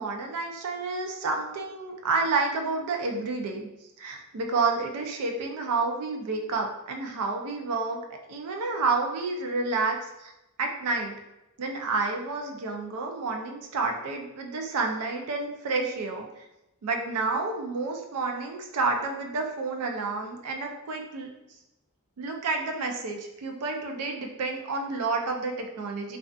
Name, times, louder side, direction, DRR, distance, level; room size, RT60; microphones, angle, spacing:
voice 1, 0.0-3.7 4.0-8.0 8.3-10.3 10.6-11.1 11.6-16.5 16.8-21.3 22.2-26.2, right 3 dB, 90° right, 2 dB, 0.4 m, -30 dB
2.4 x 2.3 x 2.3 m, 0.93 s
head